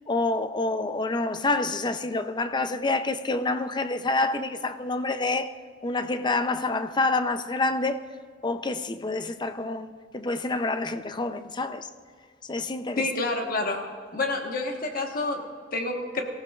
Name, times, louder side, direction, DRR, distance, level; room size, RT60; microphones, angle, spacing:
voice 1, 0.1-5.5 5.8-8.0 8.4-11.9 12.5-13.1, left 2 dB, 25° left, 0.5 m, -27 dB
voice 2, 13.0-13.8 14.1-16.2, left 2 dB, 55° left, 1.3 m, -28 dB
23.5 x 15.0 x 2.4 m
head